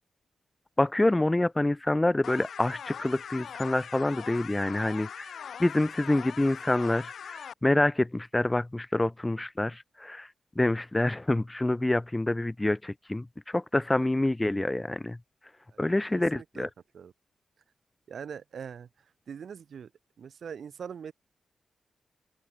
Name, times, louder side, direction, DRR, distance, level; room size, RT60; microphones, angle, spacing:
voice 1, 0.8-5.3 5.6-10.3 10.6-15.2 15.8-16.7, left 1 dB, 10° left, 0.3 m, -27 dB
sound 1, 2.2-7.5, left 7 dB, 65° left, 1.4 m, -41 dB
voice 2, 15.7-16.7 16.9-17.1 18.1-18.9 19.3-19.9 20.2-21.1, right 7 dB, 60° right, 6.9 m, -42 dB
open air
wide cardioid pair, 175°, 0 cm